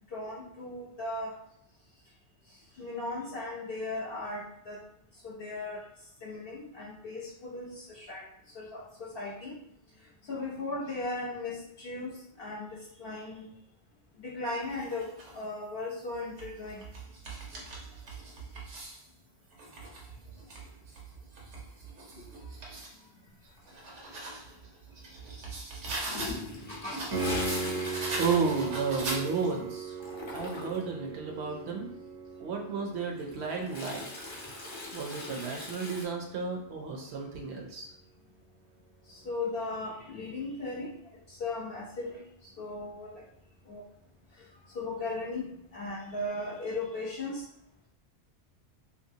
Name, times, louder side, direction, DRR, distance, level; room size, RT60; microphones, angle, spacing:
voice 1, 0.1-1.3 2.8-4.8 5.2-5.8 6.2-8.2 8.5-9.5 10.3-13.5 14.2-15.1 15.3-16.8 26.7-27.0 39.1-40.9 41.3-42.2 42.6-43.1 43.7-43.8 44.7-47.4, left 2 dB, 60° left, -5 dB, 0.8 m, -37 dB
sound 1, 14.6-15.4 16.1-19.1 19.5-23.0 23.4-26.5 26.9-29.6, right 2 dB, 85° right, 1.1 m, -41 dB
Toilet flush, 26.0-29.5 29.8-31.0 33.0-36.1, left 3 dB, 35° left, 0.5 m, -41 dB
Piano, 27.1-37.8 41.1-41.2, right 4 dB, 25° right, 0.4 m, -39 dB
voice 2, 28.2-30.0 30.3-31.9 32.4-34.1 34.9-37.9, right 4 dB, 70° right, 1 dB, 0.8 m, -32 dB
3.1 x 2.7 x 2.7 m, 0.74 s
omnidirectional pair, 1.2 m